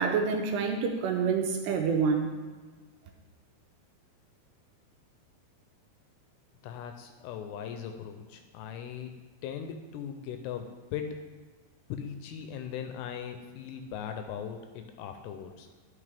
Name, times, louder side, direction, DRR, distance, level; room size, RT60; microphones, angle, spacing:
voice 1, 0.0-2.3, right 5 dB, 80° right, 3 dB, 2.6 m, -27 dB
voice 2, 6.6-9.1 9.4-11.2 11.9-15.7, left 8 dB, 80° left, 6 dB, 2.6 m, -39 dB
11.0 x 5.8 x 3.4 m, 1.4 s
omnidirectional pair, 5.1 m